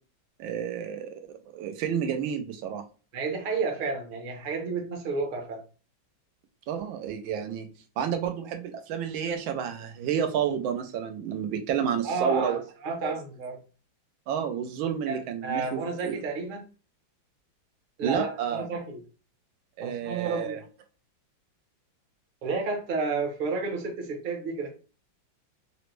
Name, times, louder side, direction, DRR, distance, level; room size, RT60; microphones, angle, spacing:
voice 1, 0.4-2.8 6.7-7.7 8.0-12.6 13.0-13.1 14.3-16.2 18.0-18.7 19.8-20.6, right 8 dB, 90° right, 1.4 m, -30 dB
voice 2, 3.1-5.6 12.0-13.6 15.1-16.7 18.0-19.0 19.8-20.6 22.4-24.7, right 4 dB, 50° right, 0.6 m, -31 dB
4.0 x 2.1 x 3.0 m
omnidirectional pair, 2.1 m